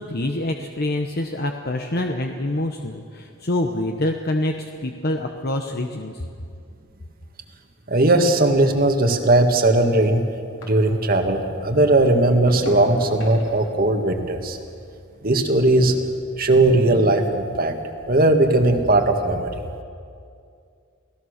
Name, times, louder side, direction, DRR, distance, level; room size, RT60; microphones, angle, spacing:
voice 1, 0.0-6.3, left 1 dB, 50° left, 3 dB, 1.1 m, -26 dB
sound 1, 4.7-11.3 11.6-16.2 16.5-17.0, left 1 dB, 65° left, 4.5 m, -43 dB
voice 2, 7.9-10.2 10.6-14.6 15.2-15.9 16.4-17.8 18.1-19.6, right 2 dB, 45° right, 5 dB, 1.9 m, -18 dB
29.5 x 17.0 x 6.6 m, 2.4 s
head